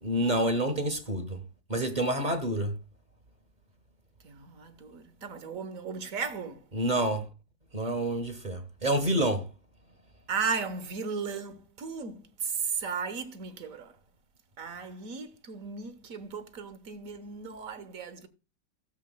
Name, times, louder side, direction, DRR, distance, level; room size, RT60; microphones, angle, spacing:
voice 1, 0.0-1.4 1.7-2.7 6.7-7.2 7.7-9.4, right 1 dB, 25° right, 1.2 m, -28 dB
voice 2, 4.2-6.6 10.3-12.2 12.8-13.9 14.6-18.3, right 5 dB, 50° right, 1.3 m, -36 dB
17.0 x 7.5 x 2.3 m
omnidirectional pair, 2.0 m